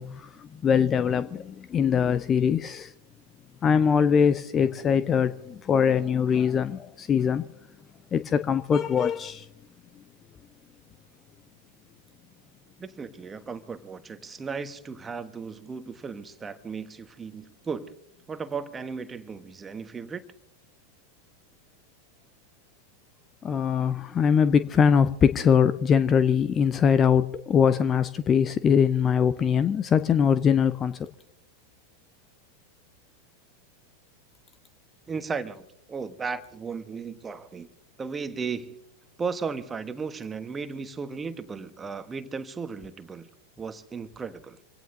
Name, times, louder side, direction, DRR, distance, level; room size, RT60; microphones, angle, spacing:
voice 1, 0.0-2.9 3.6-7.5 8.1-9.5 23.4-31.1, left 7 dB, 25° left, 14 dB, 0.6 m, -22 dB
voice 2, 12.8-18.0 18.3-20.2 35.1-37.7 38.0-38.8 39.2-43.3 43.6-44.6, right 5 dB, 15° right, 10 dB, 1.3 m, -35 dB
26.5 x 17.0 x 2.8 m, 0.76 s
figure-of-eight pair, 90°, 0 cm